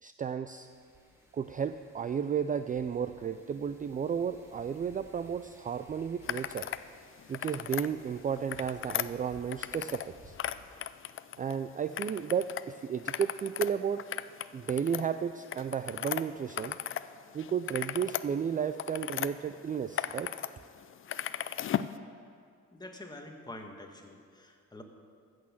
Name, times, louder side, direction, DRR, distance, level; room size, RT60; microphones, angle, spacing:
voice 1, 0.0-0.7 1.3-6.7 7.3-10.4 11.4-14.0 14.5-16.8 17.3-20.3, right 7 dB, 30° right, 10 dB, 0.4 m, -33 dB
Wind, 0.5-10.6, right 1 dB, 10° right, 2.6 m, -59 dB
sound 1, 6.2-6.8 7.2-7.9 8.4-10.1 10.3-11.6 12.0-12.6 13.0-17.1 17.4-19.3 19.7-20.5 20.8-21.9, left 10 dB, 45° left, 0.4 m, -36 dB
voice 2, 22.7-24.8, left 1 dB, 15° left, 3 dB, 1.5 m, -46 dB
14.0 x 6.4 x 7.2 m, 2.3 s
cardioid pair, 90°, 30 cm